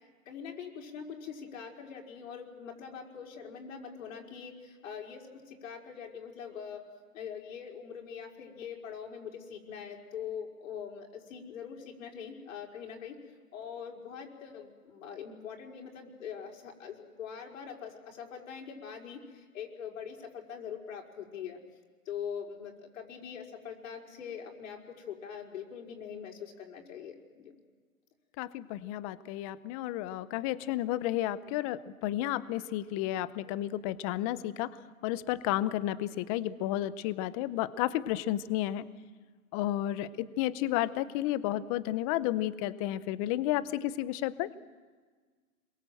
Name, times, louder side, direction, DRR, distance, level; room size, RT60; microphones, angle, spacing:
voice 1, 0.2-13.2 13.5-21.6 22.0-27.5, left 7 dB, 60° left, 1 dB, 5.2 m, -43 dB
voice 2, 28.4-34.7 35.0-38.8 39.5-44.5, left 14 dB, 25° left, 16 dB, 0.7 m, -32 dB
27.5 x 22.5 x 7.8 m, 1.5 s
hypercardioid pair, 140°, 44 cm